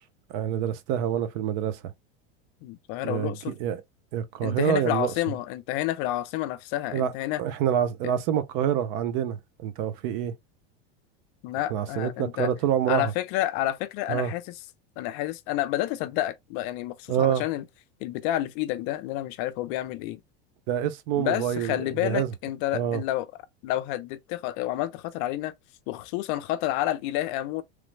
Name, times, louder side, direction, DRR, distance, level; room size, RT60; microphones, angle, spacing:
voice 1, 0.3-1.8 3.0-3.8 4.1-5.1 6.9-7.1 7.4-10.3 11.7-13.1 14.1-14.3 17.1-17.4 20.7-21.8 22.0-22.3 22.7-23.0, right 9 dB, 55° right, 0.5 m, -26 dB
voice 2, 2.6-3.5 4.4-7.4 11.4-12.5 12.9-14.4 15.0-17.6 18.0-20.2 21.2-23.3 23.6-25.5 25.9-27.6, left 14 dB, 55° left, 0.5 m, -29 dB
3.2 x 2.0 x 3.1 m
supercardioid pair, 145°, 32 cm